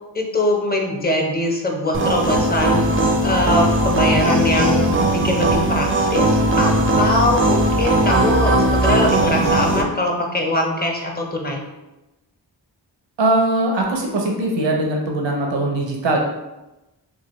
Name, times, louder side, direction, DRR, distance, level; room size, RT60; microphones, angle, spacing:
voice 1, 0.1-4.8 5.0-11.6, left 1 dB, 20° left, 0 dB, 0.7 m, -22 dB
sound 1, 1.9-9.8, right 1 dB, 30° right, 0.4 m, -18 dB
voice 2, 13.2-16.2, right 2 dB, 80° right, 1 dB, 0.7 m, -20 dB
3.2 x 2.2 x 3.0 m, 0.99 s
cardioid pair, 45°, 43 cm